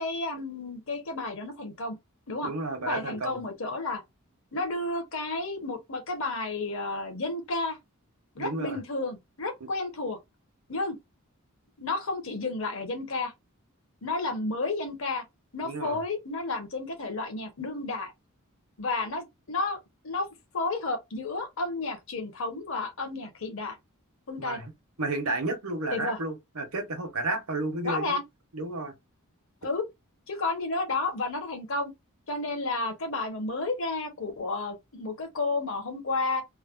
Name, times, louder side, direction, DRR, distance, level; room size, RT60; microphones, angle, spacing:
voice 1, 0.0-2.0 2.3-2.5 2.8-4.0 4.5-7.8 8.3-10.2 10.7-11.0 11.8-13.3 14.0-15.2 15.5-18.1 18.8-19.8 20.0-20.3 20.5-23.8 24.3-24.6 25.9-26.2 27.8-28.2 29.6-29.8 30.3-31.9 32.3-36.4, left 3 dB, 60° left, 0.9 m, -31 dB
voice 2, 2.4-3.4 8.4-8.8 9.6-9.7 15.6-16.0 24.4-24.7 25.0-28.2 28.5-28.9, right 2 dB, 75° right, 1.0 m, -32 dB
3.2 x 2.1 x 2.5 m
head